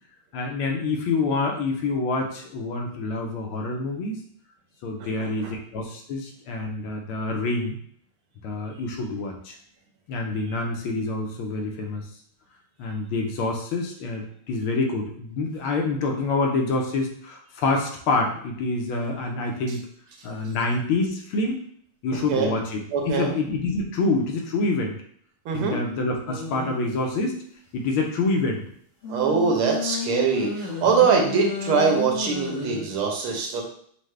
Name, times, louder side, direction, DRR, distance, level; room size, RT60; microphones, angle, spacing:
voice 1, 0.3-4.2 4.8-7.8 8.4-9.5 10.1-12.1 12.8-19.8 20.2-21.6 22.0-25.0 25.5-27.4 27.7-28.6, left 3 dB, 75° left, 1 dB, 1.6 m, -27 dB
voice 2, 5.0-5.5 22.3-22.5 22.9-23.3 25.4-25.8 29.1-33.6, right 5 dB, 75° right, 1 dB, 1.7 m, -23 dB
sound 1, 26.3-26.9 29.0-32.8, left 3 dB, 55° left, 1.8 m, -32 dB
6.2 x 2.2 x 3.2 m, 0.63 s
omnidirectional pair, 2.3 m